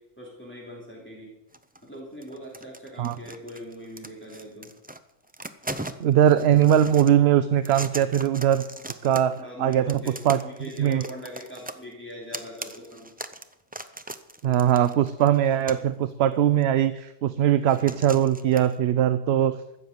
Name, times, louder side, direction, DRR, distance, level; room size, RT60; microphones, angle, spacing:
voice 1, 0.0-1.3 1.8-4.7 9.4-10.2 10.4-13.1, equal, 10° left, -3 dB, 3.1 m, -41 dB
sound 1, 1.5-1.9 2.2-5.0 5.2-7.2 7.6-9.4 9.7-15.9 16.6-16.7 17.7-18.7, right 1 dB, 15° right, 0.4 m, -39 dB
voice 2, 6.0-10.0 10.2-10.4 10.8-11.0 14.4-19.6, right 10 dB, 65° right, 13 dB, 0.8 m, -21 dB
15.0 x 7.1 x 7.8 m, 0.90 s
omnidirectional pair, 1.2 m